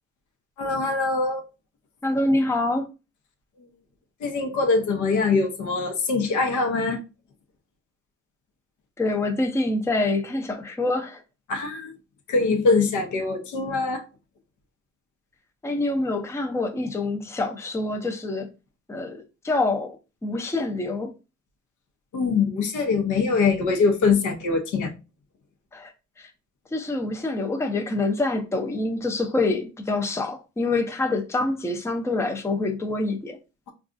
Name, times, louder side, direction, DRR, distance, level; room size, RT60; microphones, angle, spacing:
voice 1, 0.6-1.4 4.2-7.0 11.5-11.9 12.3-14.0 22.1-24.9, left 4 dB, 75° left, 0.8 m, -23 dB
voice 2, 2.0-2.9 9.0-11.2 15.6-18.5 18.9-20.0 20.2-21.1 25.7-25.9 26.7-33.4, left 2 dB, 10° left, 0.5 m, -26 dB
3.8 x 2.3 x 2.5 m
cardioid pair, 90°, 30 cm